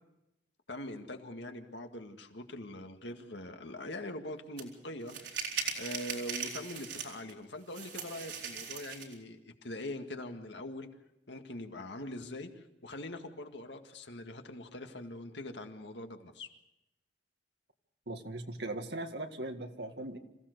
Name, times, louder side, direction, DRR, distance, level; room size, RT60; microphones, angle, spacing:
voice 1, 0.7-10.9 11.3-16.5, left 1 dB, 75° left, 5 dB, 1.9 m, -43 dB
sound 1, 4.6-4.7 5.1-7.3 7.7-9.1, right 6 dB, 80° right, 4.1 m, -39 dB
voice 2, 18.1-20.2, right 2 dB, 65° right, 5 dB, 2.0 m, -39 dB
27.0 x 16.0 x 6.7 m, 0.90 s
head